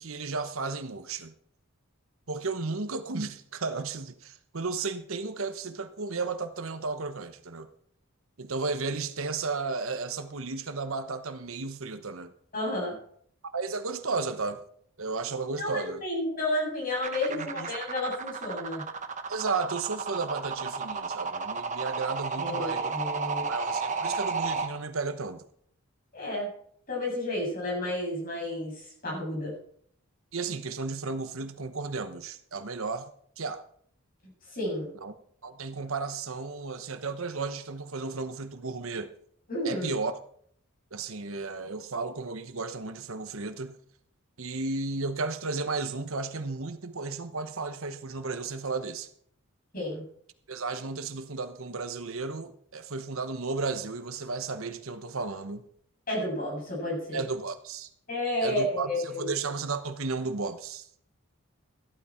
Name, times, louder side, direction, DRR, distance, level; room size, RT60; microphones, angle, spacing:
voice 1, 0.0-1.3 2.3-7.7 8.4-12.3 13.5-14.6 15.0-16.0 17.3-17.7 19.3-22.9 23.2-25.4 30.3-33.1 33.4-33.6 35.0-35.1 35.4-39.1 39.6-40.2 40.9-43.8 44.4-49.1 50.5-55.6 57.1-57.9 58.4-61.0, right 4 dB, 70° right, 1.0 m, -34 dB
voice 2, 12.5-13.0 15.6-18.8 22.4-23.5 26.1-26.5 26.9-29.5 34.5-34.9 39.5-39.9 49.7-50.0 56.1-57.2 58.1-59.3, left 1 dB, 40° left, 7.5 m, -31 dB
sound 1, 17.0-24.7, right 4 dB, 35° right, 1.1 m, -32 dB
14.0 x 12.5 x 4.4 m
head